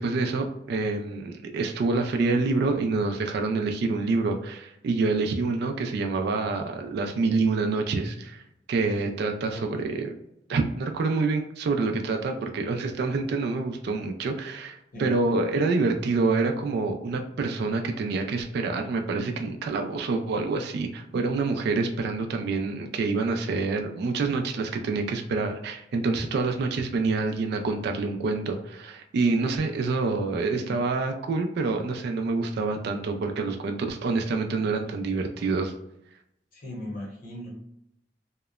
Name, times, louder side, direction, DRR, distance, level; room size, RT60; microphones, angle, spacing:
voice 1, 0.0-8.4 8.7-10.1 10.5-35.7, right 3 dB, 60° right, 4 dB, 0.3 m, -27 dB
voice 2, 9.4-9.8 14.9-15.1 30.6-31.0 36.5-37.6, left 1 dB, 50° left, -2 dB, 0.8 m, -38 dB
2.8 x 2.0 x 2.3 m, 0.81 s
head